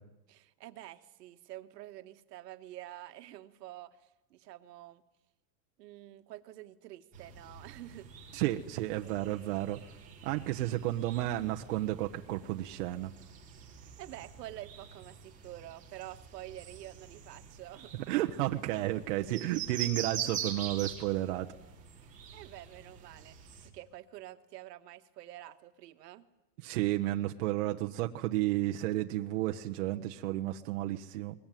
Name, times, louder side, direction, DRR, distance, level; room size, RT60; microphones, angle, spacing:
voice 1, 0.3-5.0 5.8-8.1 14.0-17.9 22.0-23.3 23.6-26.3, right 14 dB, 75° right, 9 dB, 1.6 m, -48 dB
sound 1, 7.1-23.7, right 8 dB, 15° right, 3.1 m, -45 dB
voice 2, 8.3-9.8 10.2-13.1 17.9-21.5 26.6-31.3, right 15 dB, 55° right, 4 dB, 1.0 m, -32 dB
22.0 x 21.0 x 9.2 m, 1.0 s
supercardioid pair, 180°, 49 cm